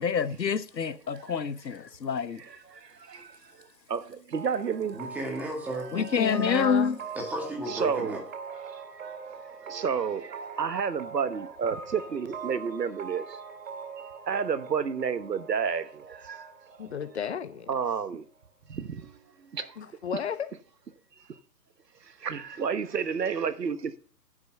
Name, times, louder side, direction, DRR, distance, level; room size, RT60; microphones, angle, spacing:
voice 1, 0.0-2.4 5.9-7.0, left 6 dB, 85° left, 1.0 m, -27 dB
voice 2, 2.4-5.0 7.7-8.2 8.5-13.4 14.3-16.5 17.7-18.2 18.7-19.2 19.5-19.8 22.0-24.0, right 6 dB, 75° right, 1.2 m, -31 dB
sound 1, 4.3-17.8, right 5 dB, 50° right, 2.7 m, -42 dB
voice 3, 4.9-5.9 7.2-8.2, right 1 dB, 5° right, 1.8 m, -34 dB
voice 4, 5.9-7.0 16.8-17.7 19.8-20.5, left 8 dB, 40° left, 0.9 m, -32 dB
10.0 x 6.1 x 6.5 m
figure-of-eight pair, 140°, 50 cm